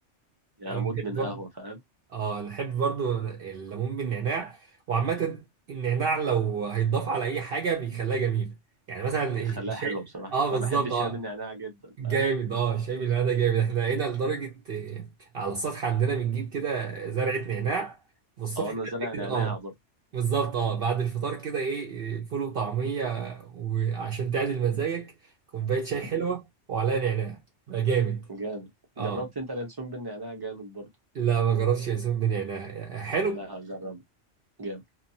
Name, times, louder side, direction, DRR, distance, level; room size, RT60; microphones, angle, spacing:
voice 1, 0.6-1.8 9.5-12.3 18.6-19.7 28.3-28.7 29.0-30.9 33.3-34.0 34.6-34.8, right 1 dB, 25° right, 0.6 m, -35 dB
voice 2, 2.1-4.6 4.9-8.5 8.9-10.0 10.3-11.2 12.0-18.0 18.4-18.7 19.1-19.6 20.1-25.1 25.5-26.4 26.7-27.4 27.7-28.2 29.0-29.2 31.1-33.4, right 6 dB, 60° right, 0.8 m, -28 dB
2.7 x 2.2 x 2.7 m
omnidirectional pair, 1.2 m